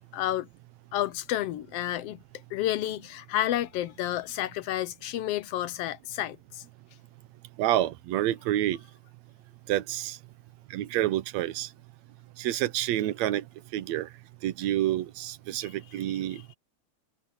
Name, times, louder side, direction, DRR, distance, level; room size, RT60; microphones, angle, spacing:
voice 1, 0.1-0.5 0.9-2.2 2.5-6.6 15.6-15.7 16.3-16.4, left 13 dB, 80° left, 1.4 m, -30 dB
voice 2, 7.6-8.8 9.7-10.2 10.7-11.7 12.4-13.4 13.7-14.1 14.4-16.4, right 13 dB, 70° right, 2.0 m, -28 dB
omnidirectional pair, 3.4 m